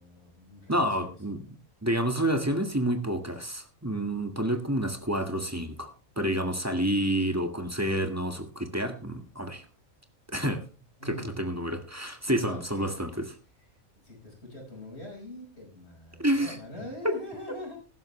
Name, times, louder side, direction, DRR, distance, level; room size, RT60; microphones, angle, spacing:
voice 1, 0.0-1.1 11.0-11.4 12.3-12.9 13.9-17.8, left 1 dB, 50° left, 0 dB, 5.7 m, -43 dB
voice 2, 0.7-1.4 1.8-5.9 6.2-9.7 10.3-10.6 11.1-13.3 16.2-16.6 17.0-17.2, right 1 dB, 10° right, 6 dB, 1.7 m, -29 dB
15.0 x 12.5 x 3.2 m, 0.32 s
omnidirectional pair, 1.4 m